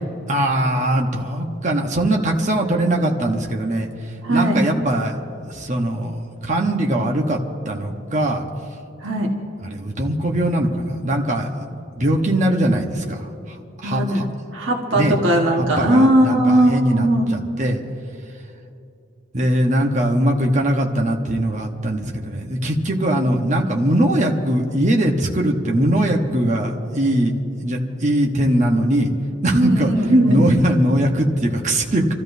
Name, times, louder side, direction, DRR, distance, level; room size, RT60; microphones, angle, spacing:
voice 1, 0.3-3.9 4.3-5.2 5.5-8.4 9.6-11.5 11.9-14.2 14.9-15.2 15.6-17.8 19.3-27.3 27.6-29.1 29.4-29.9 30.3-32.1, right 1 dB, 35° right, 1 dB, 1.1 m, -21 dB
voice 2, 4.2-4.6 9.0-9.3 13.8-14.2 14.5-17.3 29.5-30.4, right 1 dB, 75° right, 0 dB, 1.5 m, -18 dB
28.5 x 14.0 x 2.7 m, 2.7 s
head